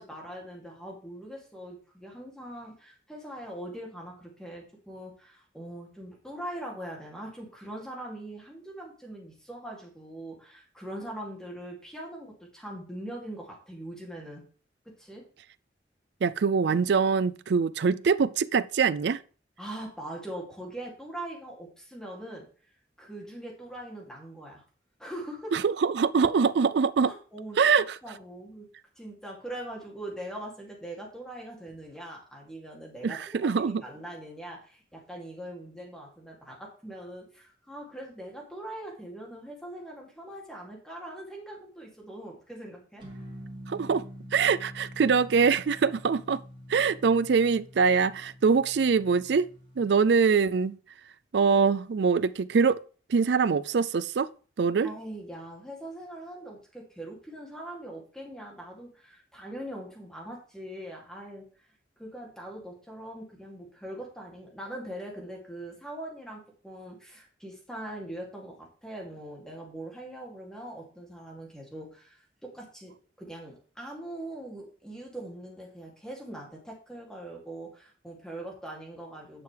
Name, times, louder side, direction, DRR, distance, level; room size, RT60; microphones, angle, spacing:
voice 1, 0.0-14.4 14.8-15.3 19.6-22.4 23.0-24.6 25.0-25.5 27.1-27.6 28.0-28.7 29.0-43.0 54.8-61.4 62.0-79.4, right 1 dB, 5° left, 2.7 m, -42 dB
voice 2, 16.2-19.2 25.5-27.1 27.6-28.0 33.0-33.8 43.7-44.0 44.3-46.4 46.7-49.5 49.8-50.8 51.3-52.8 53.1-54.3 54.6-54.9, right 5 dB, 75° right, 0.4 m, -23 dB
sound 1, 43.0-49.9, equal, 30° right, 2.9 m, -46 dB
11.0 x 6.8 x 3.4 m
head